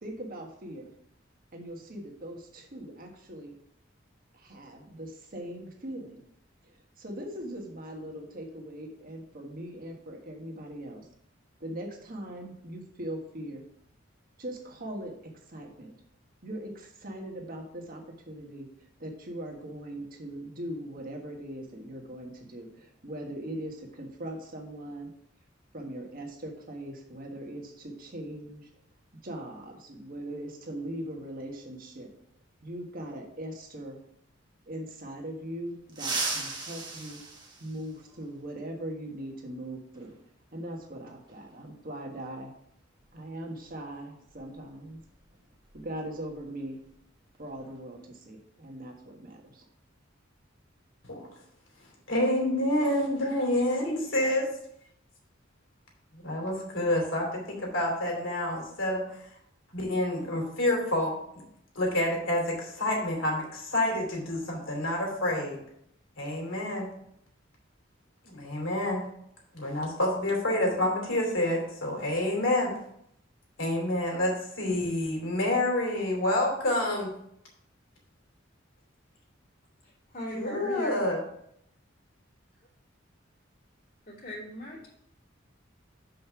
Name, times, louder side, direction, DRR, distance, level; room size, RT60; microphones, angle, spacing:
voice 1, 0.0-0.9 1.5-3.5 4.3-6.2 7.0-11.1 11.6-13.6 14.4-15.1 15.5-15.9 16.4-18.7 19.0-25.1 25.7-28.7 29.2-32.1 32.6-34.0 34.7-37.2 37.6-40.1 40.5-42.5 43.1-45.0 45.7-46.8 47.4-49.7, right 1 dB, 45° right, 2 dB, 1.5 m, -40 dB
sound 1, 35.9-38.3 40.0-40.1 41.3-41.4 43.0-43.2 43.5-43.7 44.2-46.4 46.7-46.9 47.3-47.8, right 3 dB, 20° right, 1.2 m, -37 dB
voice 2, 52.1-54.4 56.1-59.2 59.7-61.2 61.7-65.6 66.2-66.9 68.2-69.0 69.5-72.7 73.6-77.1 80.3-81.2, left 1 dB, 75° left, 0 dB, 2.9 m, -28 dB
voice 3, 79.8-81.0 84.1-84.9, equal, 50° left, -6 dB, 2.8 m, -39 dB
6.5 x 5.3 x 5.9 m, 0.73 s
head